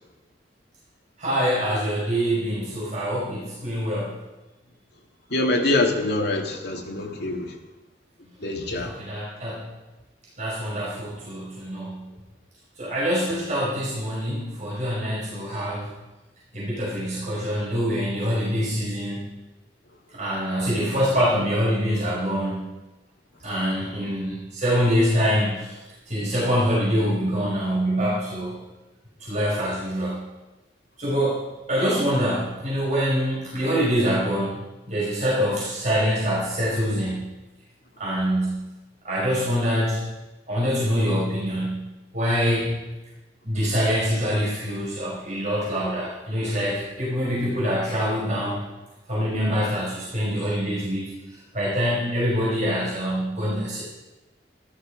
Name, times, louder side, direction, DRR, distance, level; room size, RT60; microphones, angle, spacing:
voice 1, 1.2-4.1 8.8-9.6 10.4-12.0 12.8-15.9 16.5-19.2 20.1-22.7 23.4-25.8 26.1-28.6 29.2-30.2 31.0-34.6 34.9-37.3 38.0-38.6 39.0-40.0 40.5-41.8 42.1-42.8 43.4-48.6 49.1-51.0 51.5-53.8, equal, 40° right, -7 dB, 5.6 m, -25 dB
voice 2, 5.3-7.6 8.4-8.9, left 2 dB, 65° left, 2 dB, 2.1 m, -24 dB
14.5 x 13.0 x 5.1 m, 1.1 s
head